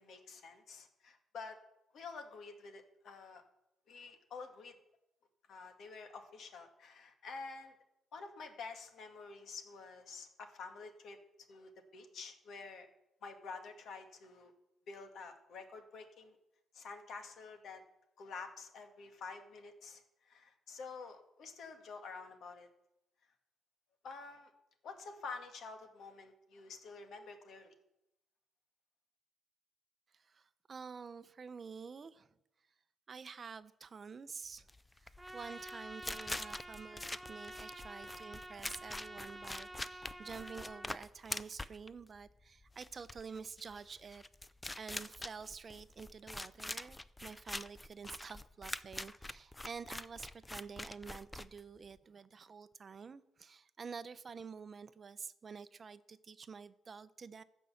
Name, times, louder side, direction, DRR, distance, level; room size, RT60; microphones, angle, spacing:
voice 1, 0.0-1.6 1.9-3.4 3.9-4.8 5.5-7.8 8.1-11.2 11.5-12.9 13.2-14.5 14.9-16.4 16.7-17.8 18.2-22.7 24.0-24.5 24.8-27.7, left 4 dB, 65° left, 1.8 m, -49 dB
voice 2, 30.1-32.3 33.1-34.7 34.9-44.2 44.8-57.4, right 5 dB, 40° right, 0.6 m, -49 dB
sound 1, 34.6-52.0, left 2 dB, 15° left, 0.5 m, -45 dB
Trumpet, 35.2-41.0, right 1 dB, 5° right, 1.0 m, -49 dB
15.0 x 5.5 x 7.1 m
cardioid pair, 90°, 0 cm